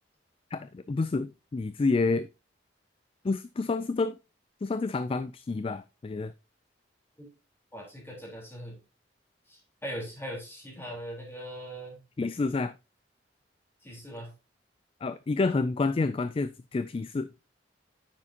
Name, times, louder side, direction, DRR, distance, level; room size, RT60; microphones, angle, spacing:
voice 1, 0.5-2.3 3.2-4.2 4.6-6.3 12.2-12.7 15.0-17.3, left 3 dB, 30° left, 0.3 m, -29 dB
voice 2, 7.7-8.8 9.5-12.0 13.8-14.3, equal, 15° left, 3.9 m, -40 dB
9.5 x 7.3 x 2.8 m
head